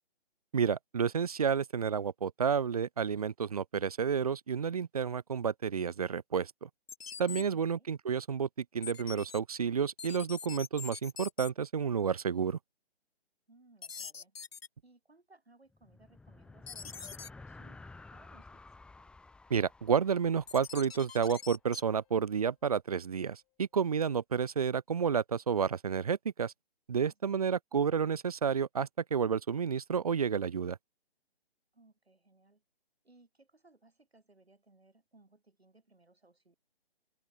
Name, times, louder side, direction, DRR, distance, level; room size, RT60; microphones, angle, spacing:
voice 1, 0.5-6.7 7.2-8.5 8.7-12.6 19.5-26.5 26.9-30.8, right 7 dB, 40° right, 0.5 m, -30 dB
sound 1, 6.9-7.4 8.8-9.4 10.0-11.5 13.8-14.7 16.7-17.3 20.5-21.8, left 6 dB, 75° left, 0.8 m, -44 dB
voice 2, 7.5-7.9 13.5-14.4 14.8-18.7 27.1-27.5 31.7-32.6 33.0-36.6, right 2 dB, 85° right, 7.3 m, -64 dB
sound 2, 15.7-21.4, left 3 dB, 5° left, 3.2 m, -53 dB
sound 3, 20.7-24.0, left 26 dB, 20° left, 5.6 m, -71 dB
figure-of-eight pair, 145°, 31 cm